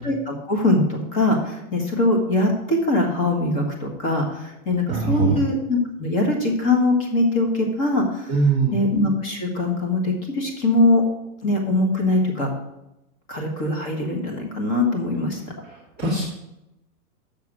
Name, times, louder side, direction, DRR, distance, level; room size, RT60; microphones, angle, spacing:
voice 1, 0.0-8.3 8.7-11.0 11.4-12.5 13.3-15.4, left 2 dB, 25° left, 2 dB, 1.5 m, -22 dB
voice 2, 4.9-5.4 8.3-8.7 16.0-16.3, right 4 dB, 5° left, -8 dB, 0.5 m, -21 dB
6.9 x 6.6 x 6.1 m, 0.89 s
supercardioid pair, 175°, 45 cm